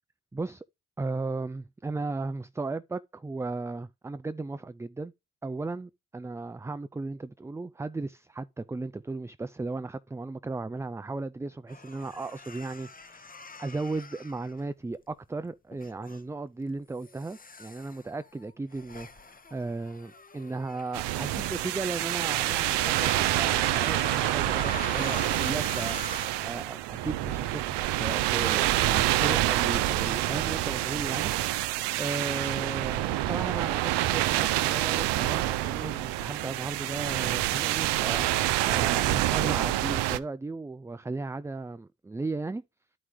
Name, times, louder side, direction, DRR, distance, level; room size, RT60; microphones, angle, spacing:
voice 1, 0.3-0.6 1.0-5.1 5.4-31.3 32.0-42.6, right 3 dB, 10° right, 0.3 m, -36 dB
sound 1, 11.7-15.1 15.7-16.2 16.9-26.3, left 3 dB, 20° left, 0.9 m, -44 dB
sound 2, 20.9-40.2, right 15 dB, 70° right, 0.7 m, -27 dB
12.0 x 4.9 x 3.1 m
hypercardioid pair, 45°, 42 cm